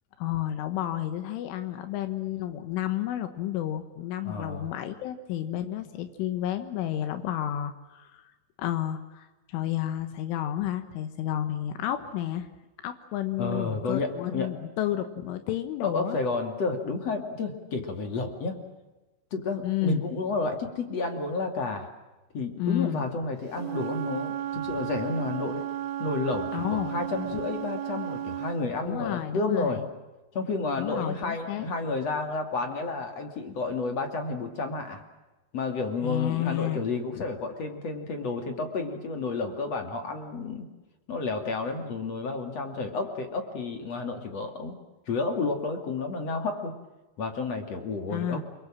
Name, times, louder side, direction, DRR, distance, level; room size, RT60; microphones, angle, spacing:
voice 1, 0.2-8.3 8.6-12.5 12.8-16.2 19.6-20.1 22.6-23.1 26.5-27.0 27.3-27.4 28.8-29.9 30.8-31.7 36.0-36.8 37.2-37.3 48.1-48.4, left 12 dB, 80° left, 9 dB, 3.8 m, -31 dB
voice 2, 4.2-4.7 13.4-14.5 15.8-18.6 19.3-21.9 22.3-25.6 26.0-29.8 30.3-35.0 35.5-40.7 41.1-44.8 45.1-46.8 47.2-48.4, left 3 dB, 40° left, 5 dB, 2.8 m, -31 dB
Wind instrument woodwind instrument, 23.5-28.6, right 12 dB, 90° right, 4.3 m, -34 dB
28.5 x 23.5 x 7.5 m, 1.1 s
omnidirectional pair, 5.6 m